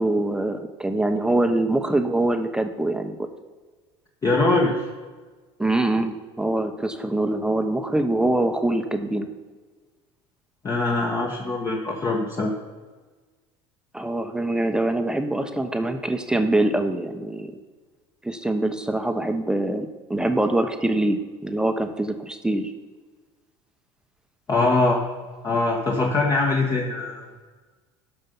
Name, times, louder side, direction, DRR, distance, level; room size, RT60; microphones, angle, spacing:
voice 1, 0.0-3.3 5.6-9.3 13.9-17.5 18.2-22.7, right 1 dB, 5° right, 6 dB, 0.9 m, -24 dB
voice 2, 4.2-4.8 10.6-12.5 24.5-25.0 25.4-27.3, left 2 dB, 25° left, 0 dB, 1.4 m, -22 dB
13.0 x 5.5 x 5.5 m, 1.4 s
supercardioid pair, 95°, 13 cm